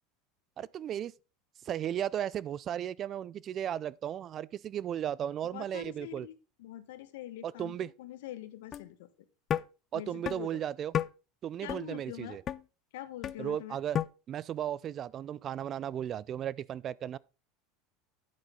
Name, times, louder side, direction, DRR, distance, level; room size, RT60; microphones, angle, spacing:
voice 1, 0.6-1.1 1.6-6.3 7.4-7.9 9.9-10.9 11.4-12.4 13.4-14.0 14.3-17.2, right 10 dB, 40° right, 0.4 m, -35 dB
voice 2, 5.5-6.3 6.6-9.1 9.9-10.6 11.6-12.4 12.9-13.8, left 12 dB, 80° left, 1.1 m, -44 dB
sound 1, 8.7-8.8 9.5-9.6 10.3-10.4 10.9-11.1 11.7-11.8 12.5-12.6 13.2-13.4 13.9-14.1, left 9 dB, 40° left, 0.4 m, -30 dB
9.8 x 8.0 x 3.8 m
supercardioid pair, 105°, 0 cm